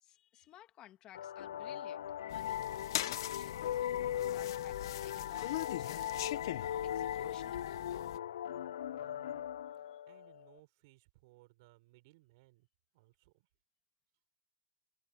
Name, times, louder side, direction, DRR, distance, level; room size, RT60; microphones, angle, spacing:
voice 1, 0.0-7.8 9.9-10.0, left 13 dB, 30° left, 2.6 m, -58 dB
sound 1, 1.1-10.6, left 11 dB, 90° left, 0.4 m, -39 dB
sound 2, 2.3-8.2, left 15 dB, 70° left, 1.3 m, -42 dB
voice 2, 8.8-9.4 9.7-12.7 12.9-13.5, right 22 dB, 55° right, 5.2 m, -65 dB
supercardioid pair, 145°, 2 cm